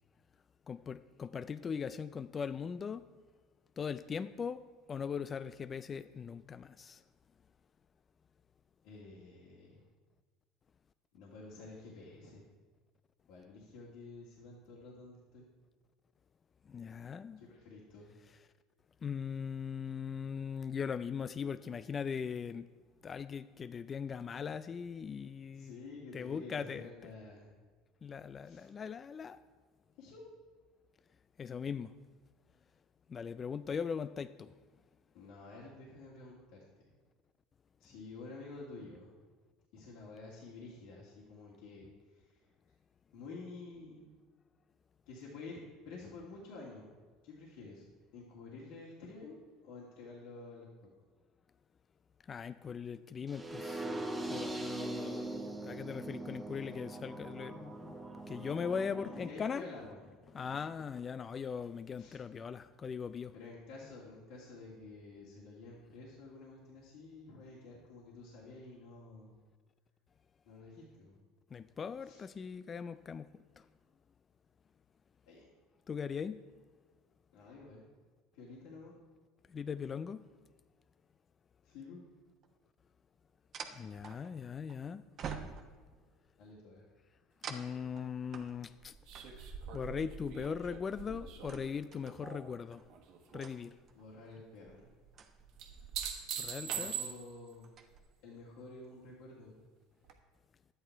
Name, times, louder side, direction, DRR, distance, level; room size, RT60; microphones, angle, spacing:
voice 1, 0.7-3.1 3.8-4.6 4.9-7.0 16.7-17.4 19.0-22.7 23.0-25.8 26.1-27.1 28.0-29.4 31.4-31.9 33.1-34.5 52.3-53.9 54.3-58.0 58.3-59.6 60.3-63.3 71.5-73.3 73.6-73.7 75.9-76.4 79.5-80.2 83.7-85.1 87.5-89.0 89.2-92.8 93.3-93.7 96.4-96.9, left 6 dB, 30° left, 0.3 m, -40 dB
voice 2, 8.8-9.8 11.1-12.4 13.3-15.4 17.4-18.1 25.5-27.5 28.4-28.7 30.0-30.2 35.1-36.6 37.8-39.2 39.7-42.4 43.1-44.1 45.1-45.6 45.9-47.0 47.2-47.8 48.1-50.7 59.1-60.0 62.0-62.2 63.3-69.4 70.4-71.2 72.1-72.2 75.3-75.5 77.3-77.8 78.3-78.9 81.6-82.0 86.4-86.9 94.0-94.9 96.6-97.7 98.2-99.5, left 3 dB, 70° left, 2.2 m, -50 dB
sound 1, 53.3-59.3, right 2 dB, 10° right, 1.5 m, -41 dB
sound 2, 82.4-82.5 83.5-84.7 85.2-86.0 87.4-92.1 92.7-92.9 93.3-94.0 94.7-96.4 96.7-97.1 97.5-98.0, right 6 dB, 45° right, 1.0 m, -47 dB
sound 3, 89.1-92.5 92.9-93.5 95.6-97.5 100.1-100.2, right 8 dB, 65° right, 1.3 m, -42 dB
11.0 x 9.0 x 4.6 m
supercardioid pair, 110°, 0 cm